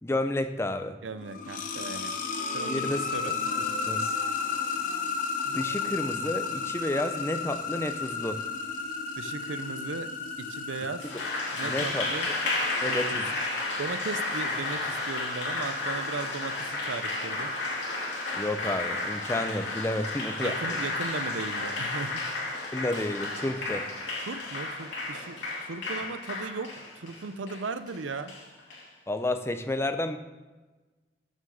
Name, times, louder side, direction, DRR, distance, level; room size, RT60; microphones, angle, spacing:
voice 1, 0.0-1.0 2.7-3.1 3.9-4.2 5.5-8.4 11.6-12.1 12.8-13.3 18.3-20.8 22.7-23.9 29.1-30.2, left 1 dB, 15° left, 8 dB, 0.5 m, -31 dB
voice 2, 1.0-2.1 2.5-3.3 9.2-10.1 10.4-11.1 11.5-12.3 12.9-13.2 13.8-17.5 20.4-22.2 24.3-28.3, right 4 dB, 90° right, 12 dB, 0.6 m, -37 dB
sound 1, 1.1-11.9, left 5 dB, 45° left, 1.0 m, -33 dB
Applause, 11.0-28.8, left 2 dB, 70° left, 2.7 m, -32 dB
7.4 x 6.3 x 7.1 m, 1.2 s
head